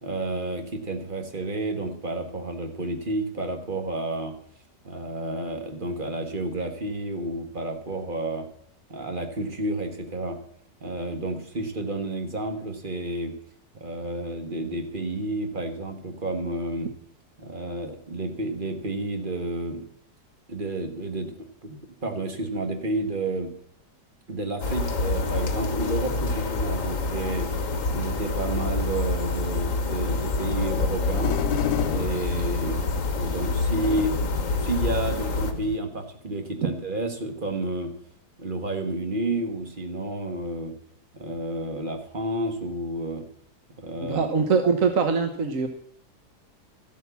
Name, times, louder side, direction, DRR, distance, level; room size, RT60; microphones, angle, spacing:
voice 1, 0.0-4.3 4.8-8.5 8.9-10.4 10.8-13.3 13.7-16.9 17.4-19.9 20.5-23.5 24.3-27.5 27.9-31.3 31.8-32.9 33.2-37.9 38.4-40.7 41.1-43.3 43.8-44.3, right 2 dB, 30° right, 5 dB, 1.6 m, -30 dB
sound 1, 24.6-35.5, left 3 dB, 55° left, 1.6 m, -27 dB
sound 2, 30.4-35.8, left 7 dB, 80° left, 1.3 m, -31 dB
voice 2, 44.1-45.7, right 5 dB, 55° right, 6 dB, 1.3 m, -22 dB
13.0 x 8.4 x 7.1 m, 0.65 s
omnidirectional pair, 1.8 m